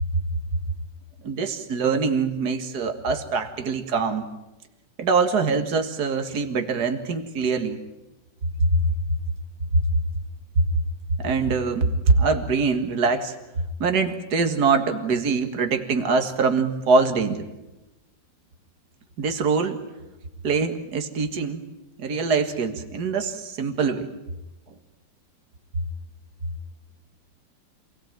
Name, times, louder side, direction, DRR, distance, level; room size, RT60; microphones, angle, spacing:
voice 1, 1.2-4.3 5.0-7.8 8.6-8.7 9.7-9.8 10.6-10.7 11.2-13.4 13.8-17.5 19.2-19.8 20.4-21.6 22.0-24.1, right 4 dB, 55° right, 6 dB, 2.3 m, -23 dB
27.5 x 18.5 x 9.1 m, 1.0 s
omnidirectional pair, 2.1 m